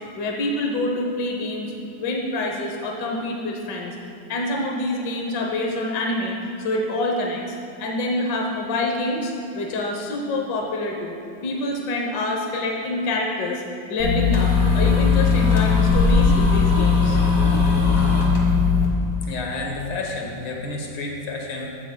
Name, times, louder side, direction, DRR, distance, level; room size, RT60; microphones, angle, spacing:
voice 1, 0.1-1.7 2.0-4.0 4.3-11.2 11.4-13.6 13.9-17.2, left 2 dB, 70° left, 0 dB, 1.6 m, -26 dB
sound 1, 14.0-18.9, left 5 dB, 45° left, 1.9 m, -18 dB
voice 2, 19.2-21.8, left 3 dB, 90° left, 0 dB, 2.0 m, -30 dB
14.5 x 10.5 x 2.2 m, 2.9 s
omnidirectional pair, 2.0 m